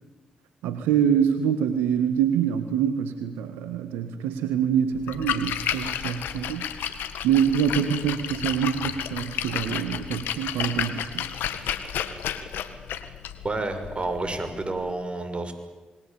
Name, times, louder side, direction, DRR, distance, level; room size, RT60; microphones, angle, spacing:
voice 1, 0.6-6.9 7.2-11.3, right 8 dB, 85° right, 9 dB, 1.6 m, -25 dB
Splash splatter, 5.0-14.9, left 10 dB, 75° left, 1.8 m, -32 dB
voice 2, 13.4-15.5, right 2 dB, 35° right, 8 dB, 6.4 m, -29 dB
27.5 x 21.5 x 8.7 m, 1.3 s
hypercardioid pair, 45°, 3 cm